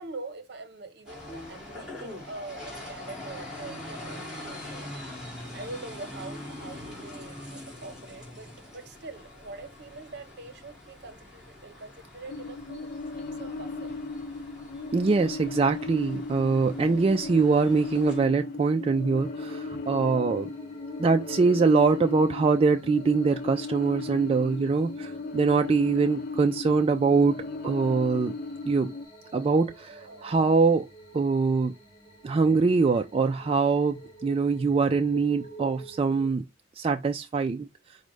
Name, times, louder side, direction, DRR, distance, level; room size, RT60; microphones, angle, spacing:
voice 1, 0.0-4.9 5.5-12.9 13.1-13.9 19.7-19.8 29.9-30.3, right 3 dB, 60° right, 0.8 m, -43 dB
sound 1, 1.1-18.2, left 1 dB, 5° right, 1.9 m, -43 dB
sound 2, 12.3-29.1, left 3 dB, 50° left, 0.4 m, -37 dB
voice 2, 14.9-20.5 21.0-28.3 28.6-28.9 29.3-30.9 31.1-31.7 32.2-36.5 36.8-37.7, right 4 dB, 30° right, 0.3 m, -23 dB
sound 3, 19.2-36.3, right 2 dB, 35° left, 1.3 m, -48 dB
5.0 x 2.2 x 4.7 m
head